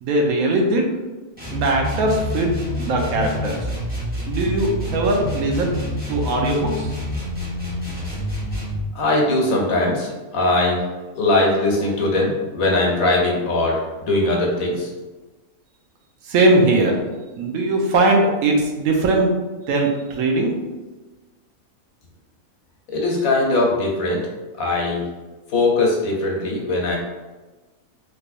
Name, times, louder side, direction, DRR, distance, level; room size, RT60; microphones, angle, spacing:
voice 1, 0.0-0.9 1.5-3.6 4.3-5.7 6.1-6.9 16.2-17.0 17.4-19.4 19.7-20.6, right 2 dB, 85° right, 1 dB, 1.1 m, -20 dB
sound 1, 1.3-8.9, left 1 dB, 10° right, 0.9 m, -27 dB
voice 2, 8.9-10.8 11.1-14.9 22.9-24.2 24.6-25.0 25.5-27.0, left 2 dB, 80° left, -2 dB, 1.3 m, -20 dB
3.4 x 3.2 x 2.4 m, 1.2 s
omnidirectional pair, 1.4 m